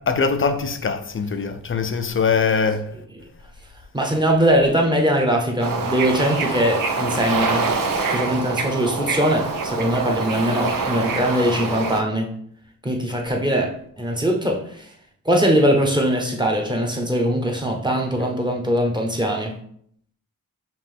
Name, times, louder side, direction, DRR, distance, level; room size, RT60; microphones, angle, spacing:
voice 1, 0.1-2.9, left 5 dB, 35° left, 0.6 m, -22 dB
voice 2, 3.9-7.6 8.1-12.3 12.8-14.9 15.2-19.5, equal, 15° right, 1.1 m, -21 dB
Bird / Ocean, 5.6-12.0, right 4 dB, 65° right, 0.8 m, -25 dB
5.8 x 2.5 x 3.5 m
cardioid pair, 65°, 35 cm